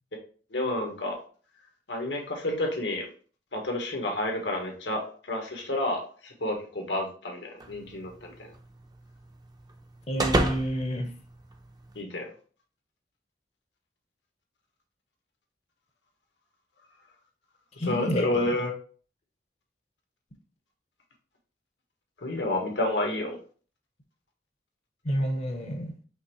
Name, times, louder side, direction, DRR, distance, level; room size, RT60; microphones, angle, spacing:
voice 1, 0.5-1.2 1.9-3.1 3.5-8.3 11.9-12.3 17.9-18.7 22.2-23.4, left 1 dB, 85° left, 1.3 m, -30 dB
sound 1, 7.6-12.0, right 2 dB, 25° right, 0.6 m, -33 dB
voice 2, 10.1-11.1 17.8-18.5 25.0-26.0, equal, 40° left, 0.7 m, -29 dB
5.4 x 3.1 x 3.0 m
head